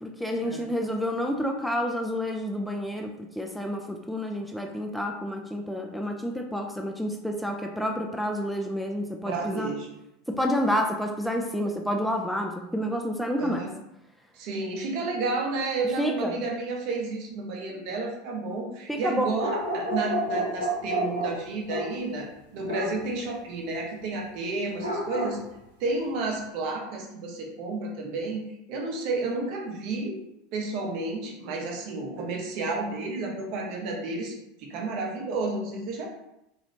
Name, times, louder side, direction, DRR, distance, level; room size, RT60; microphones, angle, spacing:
voice 1, 0.0-3.1 3.4-9.7 10.3-13.6 16.0-16.4 18.9-19.2, equal, ahead, 2 dB, 0.3 m, -29 dB
voice 2, 9.3-9.9 13.4-13.7 14.3-19.5 19.7-25.4 25.8-28.4 28.7-30.2 30.5-34.3 34.6-36.1, right 3 dB, 50° right, -1 dB, 0.8 m, -31 dB
sound 1, 19.4-22.0 22.6-23.0 24.8-25.4, right 1 dB, 90° left, 0.8 m, -29 dB
3.0 x 3.0 x 2.6 m, 0.85 s
figure-of-eight pair, 80°, 0 cm